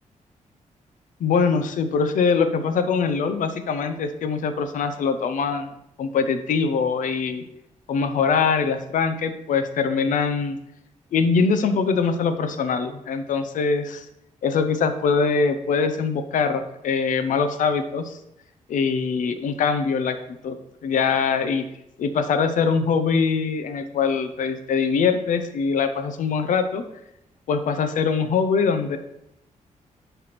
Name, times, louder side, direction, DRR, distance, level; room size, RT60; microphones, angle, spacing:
voice 1, 1.2-5.7 6.0-7.4 7.9-10.6 11.1-14.0 14.4-18.2 18.7-20.2 20.4-21.6 22.0-26.8 27.5-29.0, left 5 dB, 80° left, 9 dB, 0.8 m, -23 dB
9.8 x 3.5 x 5.9 m, 0.82 s
wide cardioid pair, 165°, 13 cm